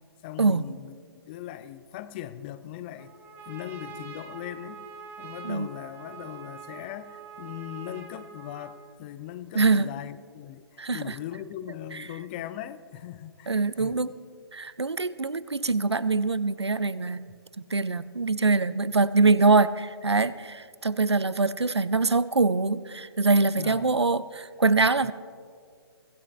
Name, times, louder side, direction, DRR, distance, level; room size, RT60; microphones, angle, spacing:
voice 1, 0.2-0.9 1.3-3.1 3.5-4.8 5.2-14.1 23.6-24.0 25.0-25.1, left 12 dB, 25° left, 14 dB, 0.5 m, -39 dB
Trumpet, 3.0-9.0, right 6 dB, 15° right, 1.5 m, -45 dB
voice 2, 9.5-9.9 10.8-11.1 13.5-14.2 14.5-17.2 17.7-25.1, right 3 dB, 80° right, 17 dB, 0.6 m, -24 dB
23.5 x 15.5 x 2.4 m, 2.2 s
figure-of-eight pair, 130°, 14 cm